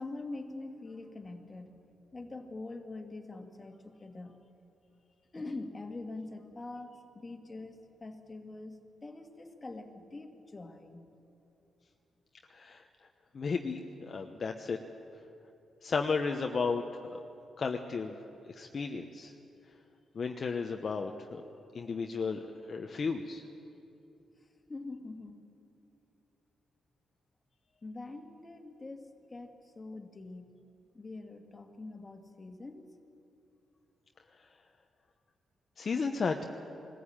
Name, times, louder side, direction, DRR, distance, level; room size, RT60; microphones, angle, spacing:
voice 1, 0.0-1.8 2.1-4.4 5.3-11.1 24.7-25.5 27.8-30.6 30.9-32.9, left 2 dB, 30° left, 5 dB, 1.9 m, -44 dB
voice 2, 13.3-14.8 15.8-16.8 17.1-17.2 17.6-18.2 18.5-19.3 20.1-21.4 21.7-22.4 22.7-23.4 35.8-36.4, left 4 dB, 50° left, 4 dB, 0.9 m, -33 dB
20.5 x 14.5 x 8.8 m, 2.8 s
cardioid pair, 75°, 0 cm